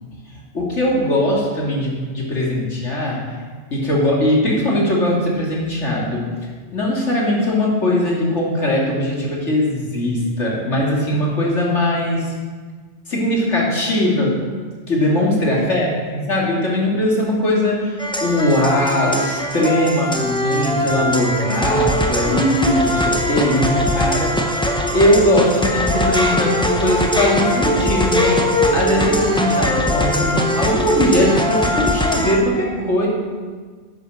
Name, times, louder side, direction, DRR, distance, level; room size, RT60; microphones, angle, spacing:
voice 1, 0.5-3.2 3.7-6.3 6.7-12.3 13.1-14.4 14.9-24.3 24.9-28.4 28.7-33.1, left 1 dB, 70° left, -3 dB, 2.8 m, -20 dB
sound 1, 18.0-32.4, equal, 5° left, 0.9 m, -20 dB
10.5 x 8.1 x 6.4 m, 1.5 s
omnidirectional pair, 1.3 m